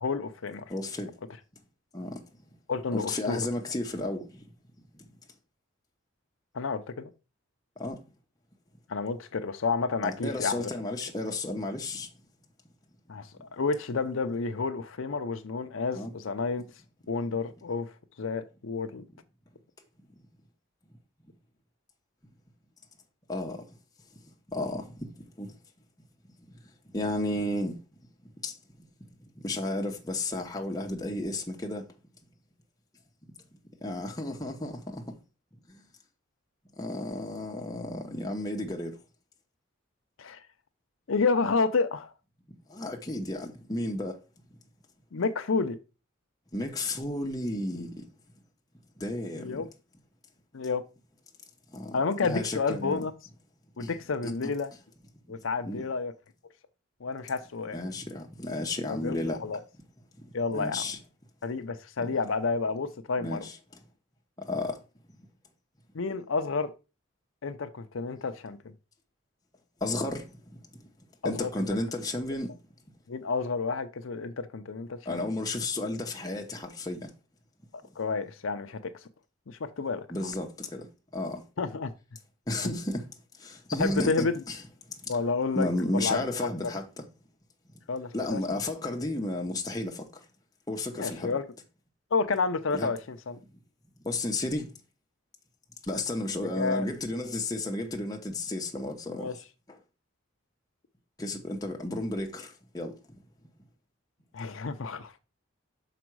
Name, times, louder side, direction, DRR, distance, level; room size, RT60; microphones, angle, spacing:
voice 1, 0.0-0.6 2.7-3.4 6.5-7.1 8.9-10.7 13.1-16.6 17.1-17.9 18.2-19.0 40.2-40.4 41.1-42.1 45.1-45.8 49.4-49.7 50.5-50.8 51.9-53.1 53.8-54.7 55.3-56.1 57.0-57.8 58.9-59.2 59.4-59.6 60.3-60.8 61.4-63.5 65.9-66.7 67.4-68.6 71.2-71.7 73.1-75.2 78.0-78.9 79.5-80.1 81.6-81.9 83.8-84.4 85.1-85.7 85.9-86.2 87.9-88.4 91.0-91.4 92.1-93.4 96.4-96.9 99.1-99.3 104.3-105.2, left 4 dB, 75° left, 0.6 m, -30 dB
voice 2, 0.7-1.1 1.9-2.2 2.9-4.4 4.9-5.1 7.8-8.0 10.0-12.1 15.9-16.1 23.3-23.6 24.5-25.1 25.4-25.5 26.9-27.8 28.4-28.6 29.4-31.9 33.8-35.2 35.7-35.8 36.8-39.0 42.7-44.2 46.5-48.0 49.0-49.6 51.7-53.1 53.8-53.9 54.2-54.3 55.6-55.8 57.7-59.4 60.2-61.0 62.0-62.1 63.2-63.6 64.4-64.8 69.8-70.9 71.2-72.5 75.0-77.1 80.1-81.4 82.5-84.6 84.9-85.2 85.5-87.0 88.1-90.2 90.7-91.3 92.7-92.9 94.0-94.7 95.8-99.4 99.7-99.8 101.2-103.2, left 2 dB, 20° left, 1.0 m, -33 dB
6.1 x 5.0 x 4.6 m
head